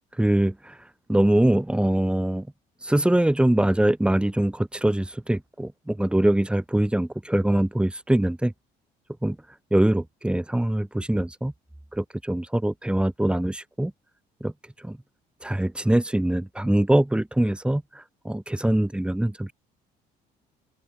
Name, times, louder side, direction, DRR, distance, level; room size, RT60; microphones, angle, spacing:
voice 1, 0.2-0.8 1.1-2.5 2.8-8.5 9.2-9.4 9.7-11.5 11.9-13.9 14.4-14.5 14.8-15.0 15.4-19.5, right 1 dB, 5° right, 4.0 m, -23 dB
open air
cardioid pair, 110°, 17 cm